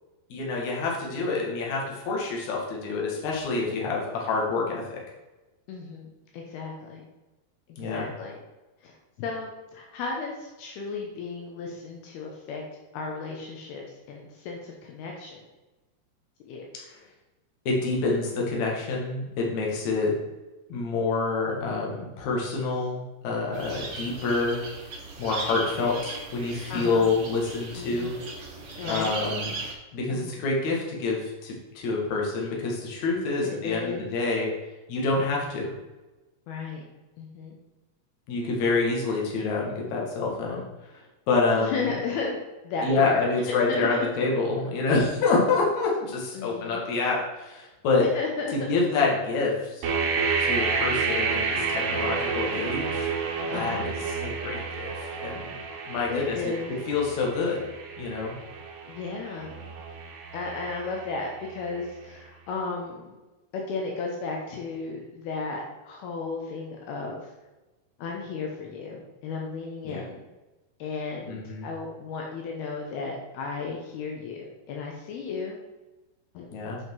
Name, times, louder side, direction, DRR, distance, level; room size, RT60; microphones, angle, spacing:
voice 1, 0.3-5.0 7.8-8.1 16.7-16.8 17.7-20.1 20.7-24.6 25.2-28.1 28.9-29.5 29.9-34.5 34.9-35.7 38.3-40.6 41.3-41.9 42.8-48.0 48.7-49.9 50.4-53.1 53.4-53.9 54.2-55.4 55.9-56.5 56.9-57.7 58.0-58.3 69.8-70.0 71.3-71.7 76.5-76.8, left 3 dB, 55° left, -2 dB, 2.7 m, -27 dB
voice 2, 5.7-7.0 7.9-8.4 8.8-12.6 12.9-15.4 16.5-16.7 26.7-27.1 27.8-28.2 28.8-29.2 30.1-30.4 33.6-34.1 36.5-36.8 37.2-37.6 41.6-43.3 43.7-44.0 46.3-46.9 48.1-48.5 53.5-53.8 56.1-56.7 58.9-59.7 60.3-63.2 63.5-67.3 68.0-70.3 70.8-75.6 76.3-76.7, left 4 dB, 75° left, 0 dB, 2.9 m, -34 dB
sound 1, 23.5-29.7, right 3 dB, 85° right, 0.9 m, -38 dB
sound 2, 49.8-61.6, right 5 dB, 65° right, 2.3 m, -30 dB
8.3 x 5.7 x 4.6 m, 1.1 s
omnidirectional pair, 4.7 m